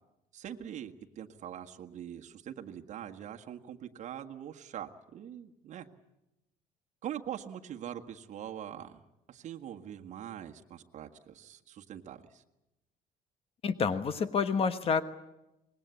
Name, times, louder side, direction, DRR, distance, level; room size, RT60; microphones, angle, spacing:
voice 1, 0.3-5.9 7.0-12.4, right 10 dB, 55° right, 4 dB, 1.6 m, -43 dB
voice 2, 13.6-15.0, left 5 dB, 40° left, 11 dB, 1.2 m, -28 dB
25.0 x 20.5 x 8.3 m, 0.93 s
cardioid pair, 130°, 15 cm